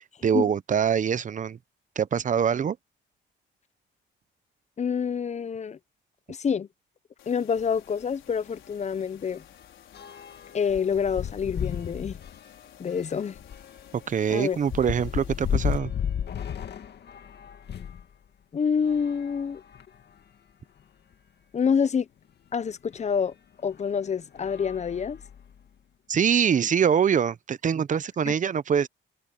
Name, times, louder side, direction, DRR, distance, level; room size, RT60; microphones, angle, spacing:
voice 1, 0.0-1.6 2.0-2.8 13.9-15.9 26.1-28.9, right 7 dB, 40° right, 0.8 m, -24 dB
voice 2, 4.8-5.8 6.3-6.7 7.3-9.4 10.5-12.2 12.8-13.4 14.3-14.6 18.5-19.6 21.5-22.1 22.5-23.3 23.6-25.2 28.2-28.3, left 6 dB, 35° left, 0.7 m, -27 dB
sound 1, 7.2-15.8, left 12 dB, 80° left, 5.3 m, -55 dB
sound 2, 7.6-7.8 8.1-8.2 8.6-18.0 18.8-20.1 20.8-20.9 21.1-21.2 22.9-23.1 23.7-23.9 24.3-25.6, left 8 dB, 55° left, 2.3 m, -35 dB
cardioid pair, 90°, 20 cm